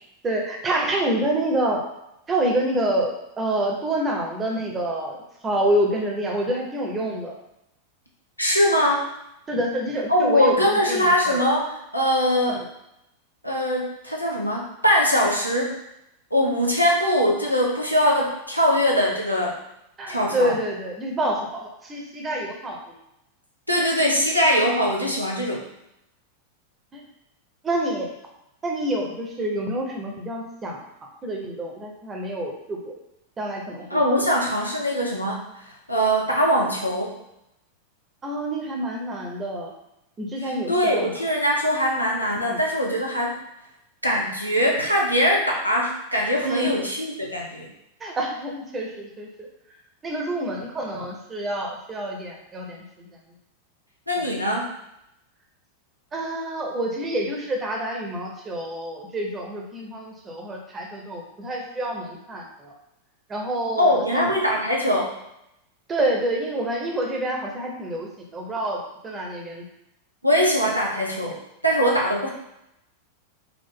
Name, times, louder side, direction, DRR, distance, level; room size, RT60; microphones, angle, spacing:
voice 1, 0.2-1.8 2.3-5.2 5.4-7.3 9.5-11.4 12.5-12.6 20.0-23.0 26.9-27.0 27.6-28.1 28.6-30.8 31.2-32.9 33.4-34.0 38.2-39.7 40.2-41.1 42.4-42.6 46.4-46.7 48.0-49.5 50.0-53.1 56.1-62.7 63.3-64.3 65.9-69.6, right 1 dB, 20° right, 0 dB, 0.9 m, -27 dB
voice 2, 8.4-9.1 10.1-12.6 13.4-15.7 16.3-19.5 20.1-20.5 23.7-25.6 33.9-35.4 35.9-37.2 40.4-43.4 44.0-47.7 54.1-54.7 63.8-65.1 70.2-71.4 71.6-72.3, equal, 90° left, -2 dB, 0.8 m, -22 dB
4.6 x 2.4 x 3.7 m, 0.84 s
figure-of-eight pair, 90°, 0 cm